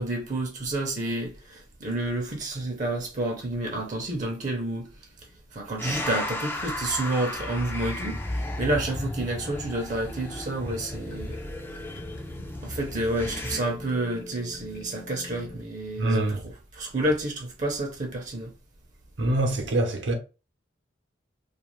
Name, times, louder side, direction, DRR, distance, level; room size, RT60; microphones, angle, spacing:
voice 1, 0.0-4.9 5.5-11.4 12.6-18.5, right 1 dB, 40° right, 0.6 m, -30 dB
sound 1, 5.8-13.6, left 1 dB, 10° left, 0.3 m, -34 dB
sound 2, 10.0-15.6, left 1 dB, 75° left, 1.0 m, -44 dB
voice 2, 16.0-16.4 19.2-20.1, right 2 dB, 75° right, 0.8 m, -24 dB
2.4 x 2.3 x 3.0 m
head